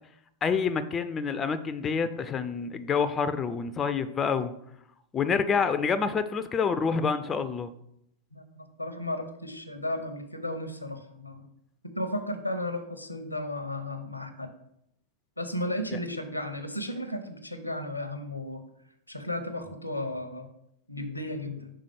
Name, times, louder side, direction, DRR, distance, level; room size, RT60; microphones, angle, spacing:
voice 1, 0.4-4.5 5.1-7.7, left 5 dB, 20° left, 11 dB, 0.4 m, -27 dB
voice 2, 8.3-11.5 11.8-14.5 15.4-18.6 19.1-20.5 20.9-21.7, left 1 dB, 85° left, 8 dB, 0.7 m, -34 dB
5.6 x 3.7 x 4.9 m, 0.75 s
figure-of-eight pair, 90°, 0 cm